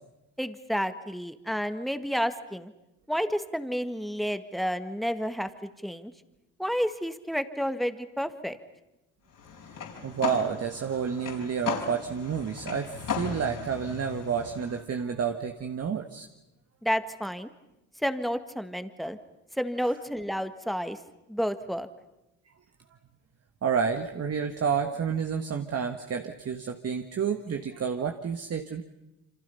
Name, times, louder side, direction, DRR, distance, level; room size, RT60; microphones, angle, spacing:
voice 1, 0.4-2.7 3.1-6.1 6.6-8.6 16.8-17.5 18.0-19.2 19.6-21.0 21.3-21.9, equal, ahead, 9 dB, 1.7 m, -30 dB
sound 1, 9.3-14.8, left 7 dB, 55° left, 5.0 m, -36 dB
voice 2, 10.0-16.3 23.6-28.8, right 7 dB, 40° right, 5 dB, 1.6 m, -30 dB
27.5 x 25.5 x 5.6 m, 0.95 s
supercardioid pair, 75°, 39 cm